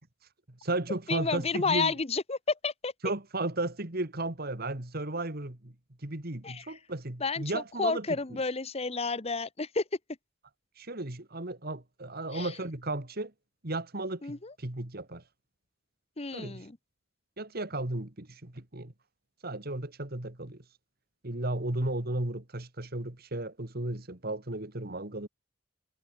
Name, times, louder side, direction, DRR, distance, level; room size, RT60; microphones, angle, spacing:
voice 1, 0.5-2.0 3.0-5.7 6.0-8.0 10.8-13.3 13.6-15.2 16.3-16.7 17.4-18.9 19.4-20.6 21.2-25.3, right 2 dB, 50° right, 2.4 m, -34 dB
voice 2, 1.1-2.9 6.4-6.6 7.2-9.8 12.3-12.5 14.2-14.5 16.2-16.8, left 4 dB, 30° left, 1.0 m, -31 dB
head